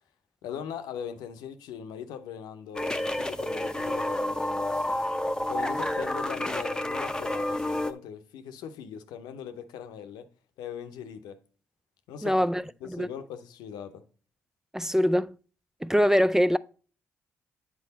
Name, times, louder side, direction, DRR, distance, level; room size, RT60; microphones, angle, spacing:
voice 1, 0.4-5.0 5.5-10.3 10.6-11.4 12.1-14.0, left 8 dB, 75° left, 0.7 m, -40 dB
sound 1, 2.7-7.9, left 1 dB, 10° left, 0.8 m, -29 dB
voice 2, 12.2-12.6 12.9-13.1 14.7-15.4 15.8-16.6, equal, 5° right, 0.4 m, -23 dB
8.4 x 4.8 x 4.1 m
hypercardioid pair, 45°, 7 cm